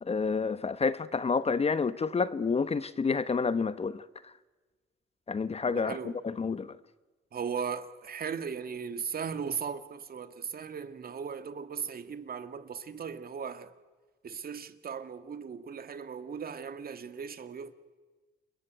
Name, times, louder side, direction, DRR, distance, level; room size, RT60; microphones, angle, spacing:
voice 1, 0.0-4.3 5.3-6.0 6.2-6.8, left 5 dB, 30° left, 1.0 m, -29 dB
voice 2, 5.7-6.2 7.3-13.7 14.2-17.7, right 6 dB, 50° right, 2.2 m, -37 dB
29.0 x 21.5 x 9.4 m
cardioid pair, 90°, 20 cm